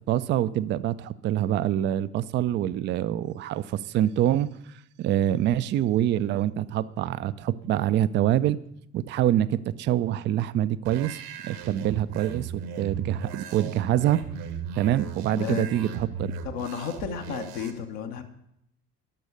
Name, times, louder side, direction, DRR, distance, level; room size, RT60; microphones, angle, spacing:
voice 1, 0.1-4.5 5.0-8.6 8.9-11.2 11.4-14.2 14.8-16.3, right 12 dB, 25° right, 16 dB, 0.3 m, -25 dB
sound 1, 10.9-17.7, right 6 dB, 70° right, 1.2 m, -37 dB
voice 2, 15.3-15.7 16.4-18.2, left 8 dB, 65° left, 4 dB, 1.2 m, -32 dB
12.0 x 6.2 x 6.6 m, 0.78 s
figure-of-eight pair, 55°, 48 cm